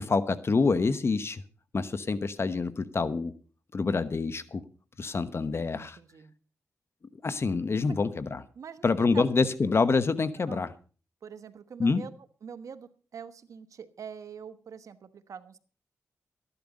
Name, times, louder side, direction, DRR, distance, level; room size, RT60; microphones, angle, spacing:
voice 1, 0.0-1.4 1.7-3.3 3.7-4.6 5.0-6.0 7.2-8.4 8.8-10.7 11.8-12.1, left 4 dB, 50° left, 13 dB, 1.0 m, -26 dB
voice 2, 5.8-6.3 7.8-8.0 8.5-8.9 9.1-9.5 10.5-10.7 11.2-12.1 12.4-15.6, right 7 dB, 75° right, 12 dB, 1.1 m, -44 dB
14.0 x 11.0 x 5.2 m, 0.38 s
cardioid pair, 55°, 6 cm